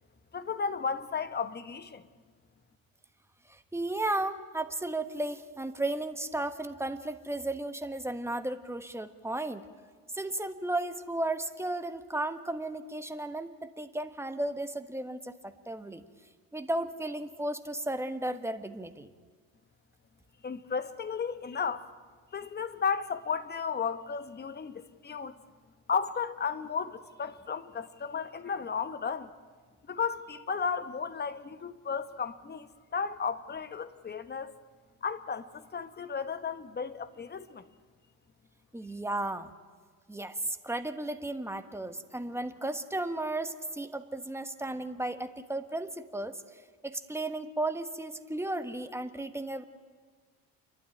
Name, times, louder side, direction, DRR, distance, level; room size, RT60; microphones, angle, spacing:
voice 1, 0.3-2.0 20.4-21.9 22.3-25.3 25.9-29.3 29.9-34.5 35.0-37.6, left 6 dB, 30° left, 1.2 m, -34 dB
voice 2, 3.5-9.6 10.1-16.0 16.5-19.1 38.7-39.5 40.1-46.4 46.8-49.7, right 2 dB, 5° right, 1.2 m, -34 dB
29.5 x 12.0 x 10.0 m
cardioid pair, 110°, 35 cm